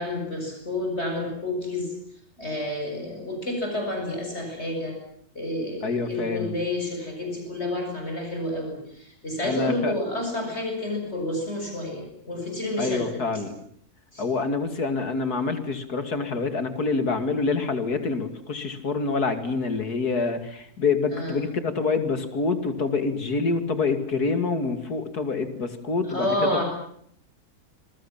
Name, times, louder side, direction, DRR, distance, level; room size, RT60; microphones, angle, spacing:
voice 1, 0.0-2.0 2.4-5.0 5.3-13.2 14.1-14.2 21.1-21.3 26.1-26.6, left 1 dB, 45° left, 2 dB, 7.7 m, -29 dB
voice 2, 5.8-6.6 9.4-9.9 12.8-13.5 14.2-26.6, left 4 dB, 85° left, 9 dB, 3.2 m, -26 dB
27.5 x 22.5 x 7.5 m, 0.66 s
omnidirectional pair, 1.6 m